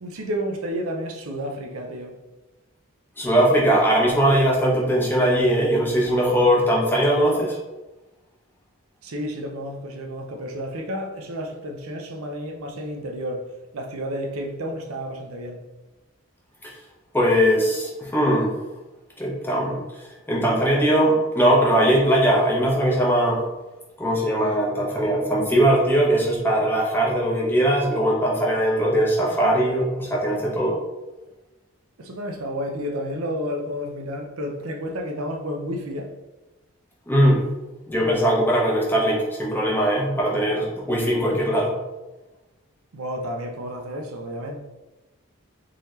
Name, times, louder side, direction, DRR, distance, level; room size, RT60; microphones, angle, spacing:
voice 1, 0.0-2.2 9.0-15.6 32.0-36.1 42.9-44.6, equal, 80° right, 0.6 m, -31 dB
voice 2, 3.2-7.6 16.6-16.7 17.1-18.5 19.2-23.4 24.0-30.7 37.1-37.4 37.9-41.7, right 1 dB, 10° left, 0.7 m, -20 dB
3.8 x 2.8 x 3.2 m
head